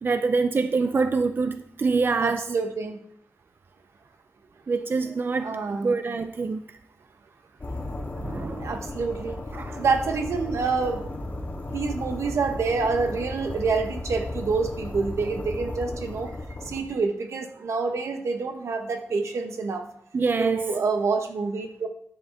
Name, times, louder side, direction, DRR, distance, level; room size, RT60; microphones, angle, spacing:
voice 1, 0.0-2.4 4.7-6.8 8.2-8.8 9.5-9.8 20.1-20.7, right 4 dB, 45° right, 0.5 m, -25 dB
voice 2, 2.2-3.0 5.4-6.0 8.6-9.4 9.8-11.0 11.7-16.3 16.6-19.9 20.4-21.9, right 4 dB, 90° right, 1.2 m, -27 dB
sound 1, 7.6-16.8, left 2 dB, 40° left, 1.7 m, -35 dB
10.0 x 8.0 x 3.5 m
wide cardioid pair, 110°, 5 cm